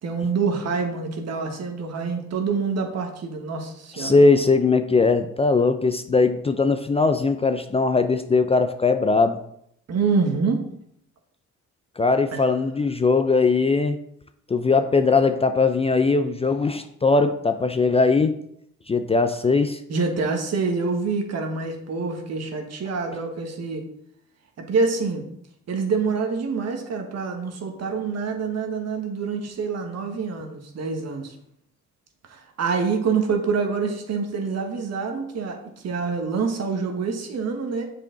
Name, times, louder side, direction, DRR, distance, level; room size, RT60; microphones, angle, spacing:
voice 1, 0.0-4.2 9.9-10.6 12.3-12.5 19.9-23.9 24.6-25.2 25.7-31.3 32.3-37.8, right 4 dB, 60° right, 3 dB, 1.4 m, -26 dB
voice 2, 4.0-9.4 12.0-14.0 14.5-18.3 18.9-19.8, left 3 dB, 20° left, 8 dB, 0.4 m, -20 dB
7.2 x 4.9 x 3.9 m, 0.73 s
cardioid pair, 90°, 30 cm